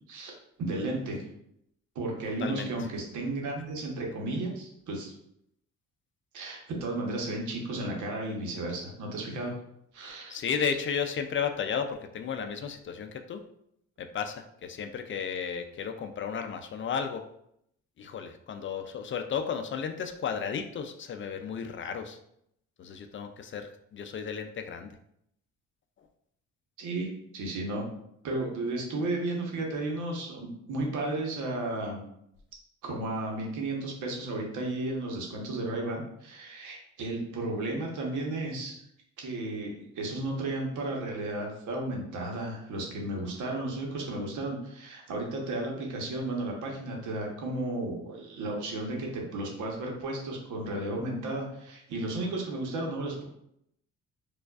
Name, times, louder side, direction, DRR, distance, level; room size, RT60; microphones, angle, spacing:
voice 1, 0.6-1.2 1.9-5.1 6.3-9.5 9.9-10.4 26.8-27.1 27.3-27.8 28.2-32.0 32.8-38.8 39.2-53.2, right 2 dB, 85° right, 0 dB, 1.0 m, -33 dB
voice 2, 10.3-13.4 14.0-17.2 18.0-22.2 22.8-24.9, left 7 dB, 40° left, 6 dB, 0.4 m, -33 dB
4.4 x 2.4 x 2.4 m, 0.75 s
cardioid pair, 90°, 30 cm